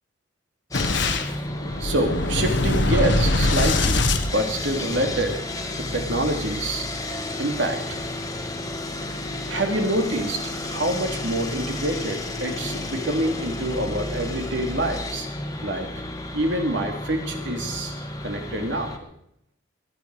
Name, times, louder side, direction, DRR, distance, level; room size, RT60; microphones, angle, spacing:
Boom, 0.7-5.1, left 2 dB, 60° left, 1.3 m, -23 dB
Sawing, 0.7-19.0, left 2 dB, 20° left, 1.5 m, -32 dB
voice 1, 1.8-4.0 4.3-6.9 7.4-8.0 9.4-15.3 15.6-15.9 16.3-17.9 18.2-18.9, right 1 dB, 65° right, 3 dB, 3.0 m, -26 dB
22.5 x 11.0 x 4.9 m, 0.71 s
head